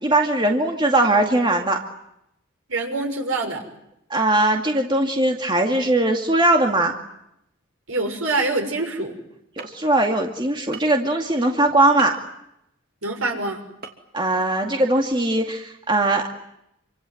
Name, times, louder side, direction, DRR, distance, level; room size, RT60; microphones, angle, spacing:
voice 1, 0.0-1.8 4.1-6.9 9.6-12.2 14.1-16.3, right 2 dB, 20° right, 2 dB, 2.2 m, -20 dB
voice 2, 2.7-3.6 7.9-9.2 13.0-13.6, right 2 dB, 80° right, 4 dB, 6.1 m, -25 dB
sound 1, 9.6-9.7 10.7-11.0 12.0-12.2 13.8-14.0 14.3-14.4, right 5 dB, 50° right, 3.0 m, -36 dB
28.0 x 25.5 x 7.9 m, 0.81 s
head